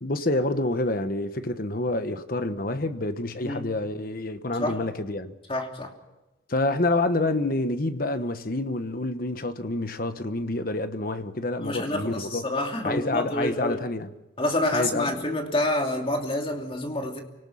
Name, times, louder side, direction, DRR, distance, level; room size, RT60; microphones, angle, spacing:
voice 1, 0.0-5.3 6.5-12.4 12.8-14.1 14.7-15.2, left 2 dB, 50° left, 1.2 m, -28 dB
voice 2, 5.5-5.9 11.6-13.8 14.4-17.2, left 1 dB, 30° left, 2.8 m, -28 dB
28.0 x 18.5 x 5.8 m
head